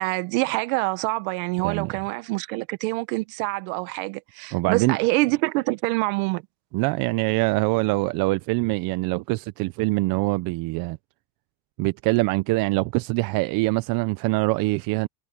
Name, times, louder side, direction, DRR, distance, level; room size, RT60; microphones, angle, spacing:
voice 1, 0.0-6.4, right 24 dB, 60° right, 1.5 m, -26 dB
voice 2, 1.6-1.9 4.5-5.0 6.7-11.0 11.8-15.1, right 23 dB, 45° right, 0.7 m, -24 dB
supercardioid pair, 140°, 49 cm